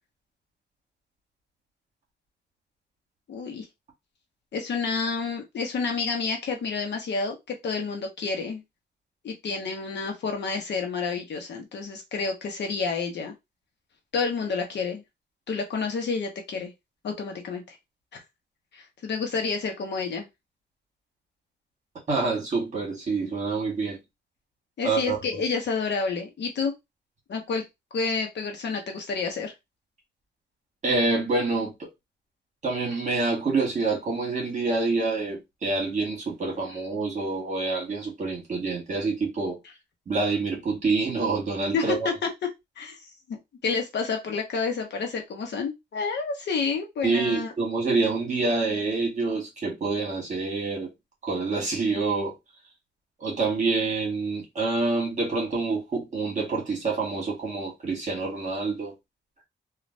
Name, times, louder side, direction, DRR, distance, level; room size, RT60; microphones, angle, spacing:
voice 1, 3.3-3.7 4.5-8.6 9.2-13.3 14.1-15.0 15.5-16.7 17.0-17.8 18.7-20.3 24.8-26.7 27.3-27.6 27.9-29.5 41.7-42.3 42.8-43.0 43.3-47.5, left 4 dB, 70° left, 0.9 m, -29 dB
voice 2, 22.1-24.0 24.8-25.2 30.8-31.9 32.6-39.6 40.1-42.1 47.0-50.9 51.2-52.3 53.2-58.9, right 3 dB, 40° right, 1.5 m, -27 dB
3.2 x 2.4 x 2.5 m
wide cardioid pair, 155°, 18 cm